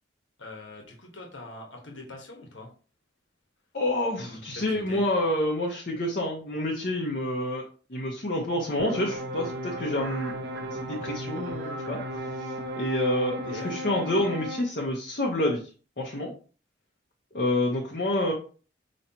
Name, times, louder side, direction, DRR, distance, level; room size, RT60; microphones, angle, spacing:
voice 1, 0.4-2.7 4.3-5.0 13.5-13.7, left 2 dB, 90° left, 1 dB, 1.3 m, -43 dB
voice 2, 3.7-7.6 7.9-10.3 10.8-12.0 12.4-12.5 12.7-15.6 16.0-16.3 17.3-18.3, left 1 dB, 50° left, -2 dB, 0.9 m, -28 dB
sound 1, 8.8-14.6, equal, 65° right, 0.9 m, -35 dB
5.5 x 3.1 x 2.9 m, 0.39 s
head